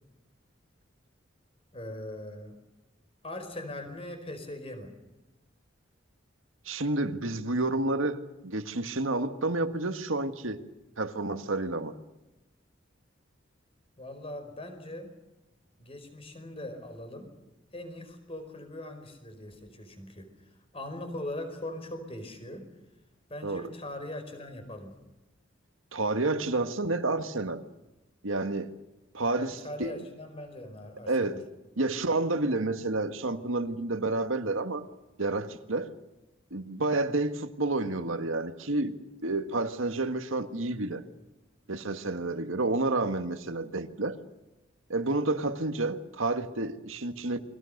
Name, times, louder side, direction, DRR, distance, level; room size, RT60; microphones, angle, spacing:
voice 1, 1.7-2.6 3.2-5.0 14.0-15.2 15.8-17.3 17.7-22.7 23.3-25.0 29.4-31.4, left 1 dB, 30° left, 4.9 m, -41 dB
voice 2, 6.7-10.6 11.0-12.0 23.4-23.6 25.9-27.6 28.2-28.7 29.1-29.9 31.1-31.4 31.8-34.9 35.2-35.9 36.5-38.9 39.2-41.0 41.7-44.2 44.9-47.4, right 2 dB, 90° right, 1.8 m, -30 dB
29.5 x 23.0 x 6.7 m
head